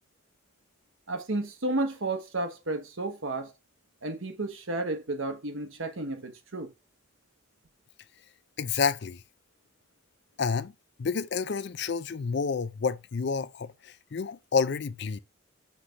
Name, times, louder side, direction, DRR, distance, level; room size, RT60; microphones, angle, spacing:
voice 1, 1.1-3.5 4.0-6.7, right 2 dB, 70° right, 1.2 m, -32 dB
voice 2, 8.6-9.2 10.4-10.7 11.0-15.2, left 5 dB, 50° left, 0.4 m, -29 dB
5.9 x 3.3 x 5.6 m
head